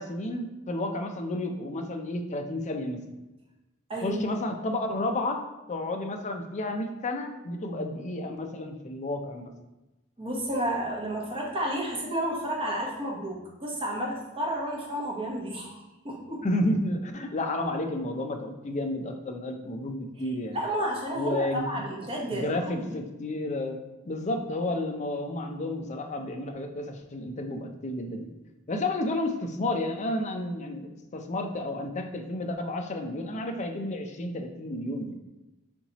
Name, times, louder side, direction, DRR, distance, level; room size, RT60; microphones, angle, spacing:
voice 1, 0.0-3.0 4.0-9.5 16.4-20.6 21.1-21.8 22.3-23.8 24.0-28.3 28.7-35.2, left 1 dB, 35° left, 4 dB, 0.5 m, -31 dB
voice 2, 3.9-4.4 10.2-15.8 16.0-16.4 20.5-22.9, right 1 dB, 25° right, -2 dB, 1.0 m, -31 dB
4.3 x 3.9 x 2.9 m, 1.0 s
head